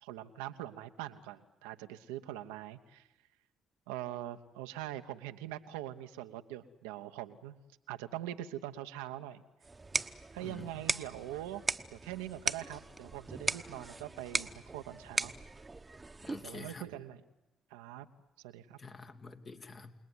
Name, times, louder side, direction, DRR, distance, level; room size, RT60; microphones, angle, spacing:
voice 1, 0.0-3.1 3.9-7.5 7.9-9.4 10.3-11.6 11.9-15.3 16.4-17.2 17.7-18.1 18.4-18.8, right 13 dB, 85° right, 8 dB, 1.0 m, -43 dB
sound 1, 9.6-16.6, right 3 dB, 25° right, 1.1 m, -38 dB
voice 2, 16.2-16.9 18.8-20.0, left 4 dB, 45° left, 6 dB, 2.5 m, -47 dB
29.0 x 19.5 x 9.6 m, 0.99 s
hypercardioid pair, 50°, 0 cm